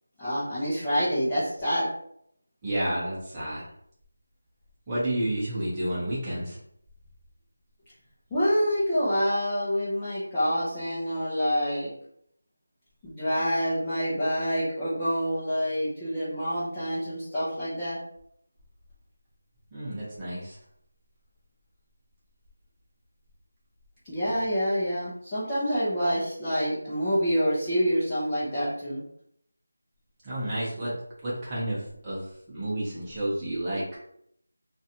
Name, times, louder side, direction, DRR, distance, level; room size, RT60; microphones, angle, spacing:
voice 1, 0.2-1.9 8.3-11.9 13.0-18.0 24.1-29.0, equal, 10° left, -13 dB, 0.8 m, -27 dB
voice 2, 2.6-3.6 4.9-6.6 19.7-20.6 30.2-30.9 31.2-32.2 32.5-33.9, right 1 dB, 15° right, -8 dB, 1.0 m, -30 dB
3.0 x 2.5 x 2.8 m, 0.70 s
figure-of-eight pair, 170°, 0 cm